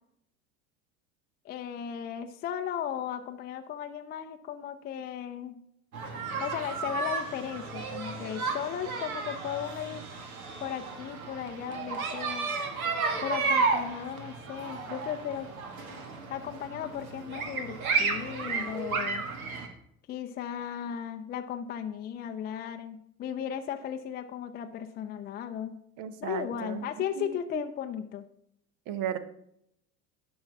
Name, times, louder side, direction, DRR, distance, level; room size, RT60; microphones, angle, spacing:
voice 1, 1.4-5.6 6.4-10.0 10.6-12.5 13.2-15.5 16.3-19.2 20.1-25.8 26.2-28.3, left 9 dB, 20° left, 5 dB, 0.5 m, -36 dB
sound 1, 5.9-19.7, right 4 dB, 70° right, 1.6 m, -33 dB
voice 2, 26.0-26.9 27.2-27.3 27.5-27.6 28.9-29.2, right 9 dB, 45° right, 13 dB, 0.9 m, -34 dB
10.5 x 5.5 x 5.8 m, 0.75 s
figure-of-eight pair, 75°, 44 cm